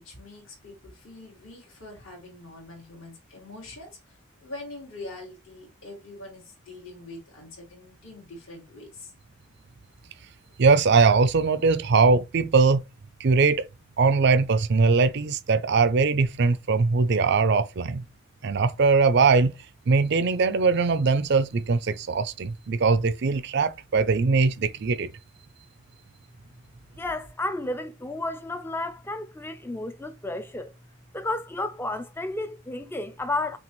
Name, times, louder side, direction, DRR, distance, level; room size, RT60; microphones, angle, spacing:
voice 1, 0.0-9.1, left 2 dB, 65° left, 2.2 m, -44 dB
voice 2, 10.6-12.8 13.2-13.7 14.0-18.0 18.4-19.5 19.9-25.1, right 4 dB, 50° right, 0.4 m, -21 dB
voice 3, 27.0-30.7 31.1-33.6, left 2 dB, 10° left, 0.4 m, -32 dB
5.8 x 2.4 x 3.0 m
head